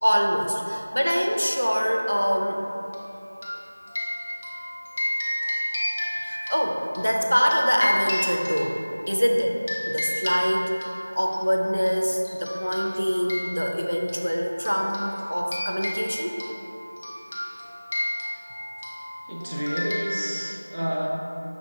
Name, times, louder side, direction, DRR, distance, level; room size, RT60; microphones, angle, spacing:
voice 1, 0.0-2.6 6.2-16.4, equal, 80° left, 1 dB, 0.5 m, -24 dB
sound 1, 2.9-9.1 9.7-11.4 11.9-12.0 12.2-20.0, left 1 dB, 20° left, 0.4 m, -32 dB
voice 2, 19.3-21.1, equal, 45° right, -3 dB, 0.6 m, -29 dB
5.7 x 2.5 x 2.8 m, 2.9 s
figure-of-eight pair, 175°, 0 cm